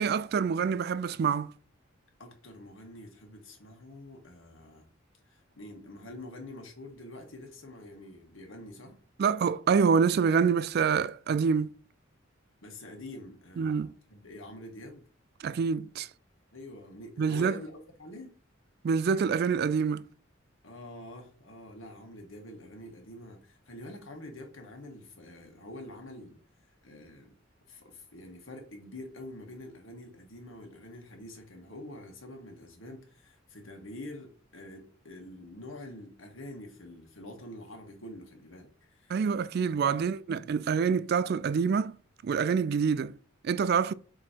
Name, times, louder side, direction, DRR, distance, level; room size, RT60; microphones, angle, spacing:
voice 1, 0.0-1.5 9.2-11.7 13.6-13.9 15.4-16.1 17.2-17.6 18.8-20.0 39.1-42.0 42.2-43.2 43.4-43.9, right 6 dB, 50° right, 0.3 m, -26 dB
voice 2, 2.2-4.9 5.3-9.0 12.6-15.0 16.5-18.4 20.6-26.4 26.8-27.3 27.7-39.2 39.7-40.1, left 1 dB, 80° left, 1.7 m, -46 dB
7.5 x 3.2 x 4.4 m
head